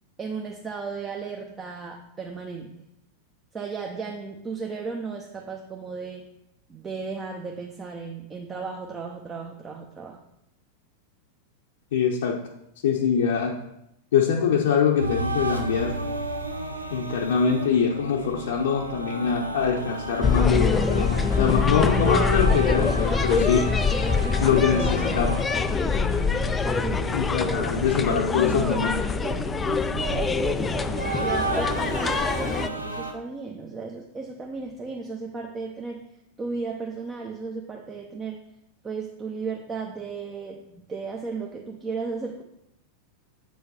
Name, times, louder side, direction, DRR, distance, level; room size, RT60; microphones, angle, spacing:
voice 1, 0.2-2.9 3.5-6.3 6.7-10.2 26.6-27.2 27.5-27.7 28.5-36.0 36.4-38.4 38.8-42.4, right 4 dB, 20° right, 1 dB, 0.8 m, -35 dB
voice 2, 11.9-12.4 12.8-13.5 14.1-16.0 16.9-23.7 24.4-25.4 27.1-29.0, left 7 dB, 60° left, -2 dB, 0.8 m, -23 dB
sound 1, 15.0-33.1, right 2 dB, 90° right, 0.7 m, -33 dB
sound 2, 20.2-32.7, left 5 dB, 15° left, 0.3 m, -24 dB
7.8 x 4.8 x 4.3 m, 0.80 s
figure-of-eight pair, 90°, 0 cm